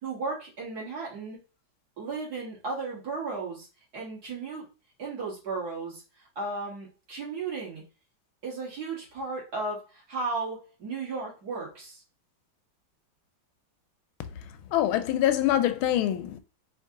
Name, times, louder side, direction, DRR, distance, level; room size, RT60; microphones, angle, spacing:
voice 1, 0.0-1.4 2.0-3.7 3.9-4.7 5.0-7.8 8.4-12.0, right 3 dB, 50° right, 2.2 m, -35 dB
voice 2, 14.7-16.4, left 12 dB, 90° left, 1.4 m, -24 dB
4.5 x 2.8 x 3.7 m
omnidirectional pair, 2.2 m